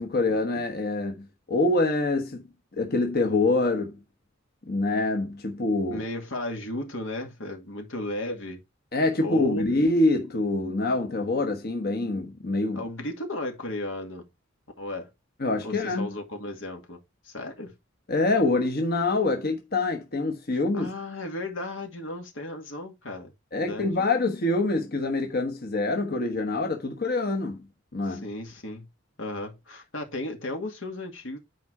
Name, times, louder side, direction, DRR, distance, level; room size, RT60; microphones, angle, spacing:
voice 1, 0.0-2.4 2.8-4.0 4.7-6.0 8.9-12.8 15.4-16.1 18.1-20.9 23.5-27.6 27.9-28.2, left 2 dB, 55° left, 1.2 m, -25 dB
voice 2, 5.9-8.6 9.2-9.7 12.7-14.3 14.8-15.1 15.6-17.0 17.2-17.8 20.7-23.3 23.6-23.9 28.0-28.9 29.2-31.4, left 1 dB, 85° left, 2.3 m, -35 dB
9.2 x 4.8 x 4.7 m
head